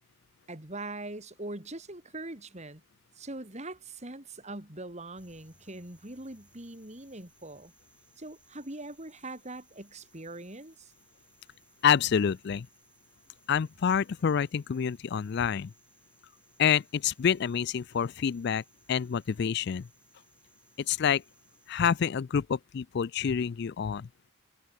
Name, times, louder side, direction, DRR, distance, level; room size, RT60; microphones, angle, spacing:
voice 1, 0.5-2.8 3.2-7.7 8.2-10.9, right 2 dB, 30° right, 3.1 m, -42 dB
sound 1, 5.2-22.0, right 2 dB, 5° right, 7.6 m, -65 dB
voice 2, 11.8-12.7 13.5-15.7 16.6-18.6 18.9-19.9 20.9-21.2 21.7-24.1, left 7 dB, 50° left, 0.4 m, -27 dB
head